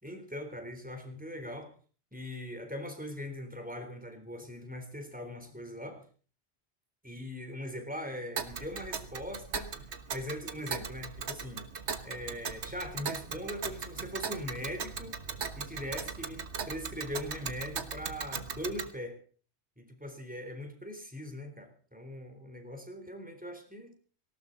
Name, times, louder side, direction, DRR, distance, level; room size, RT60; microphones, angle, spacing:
voice 1, 0.0-1.7 2.1-6.1 7.0-11.7 12.0-15.2 15.6-19.2 19.8-24.0, equal, 5° right, 5 dB, 3.7 m, -41 dB
Tick, 8.4-18.9, right 6 dB, 85° right, 1.6 m, -39 dB
18.5 x 17.5 x 4.1 m, 0.39 s
omnidirectional pair, 1.1 m